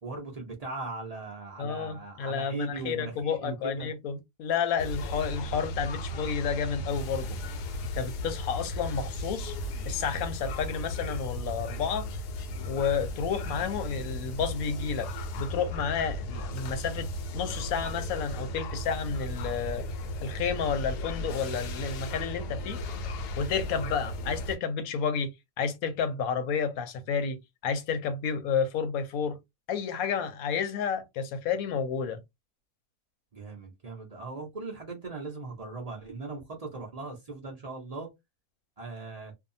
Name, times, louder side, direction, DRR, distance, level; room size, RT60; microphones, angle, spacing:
voice 1, 0.0-3.9 33.3-38.1 38.8-39.3, right 3 dB, 45° right, 0.5 m, -39 dB
voice 2, 1.6-7.4 8.0-9.5 9.9-12.1 12.7-15.1 15.4-19.8 20.2-22.8 23.4-27.4 27.6-29.4 29.7-32.2, left 6 dB, 70° left, 1.0 m, -31 dB
sound 1, 4.8-24.6, left 1 dB, 90° left, 1.2 m, -35 dB
2.7 x 2.3 x 2.6 m
omnidirectional pair, 1.7 m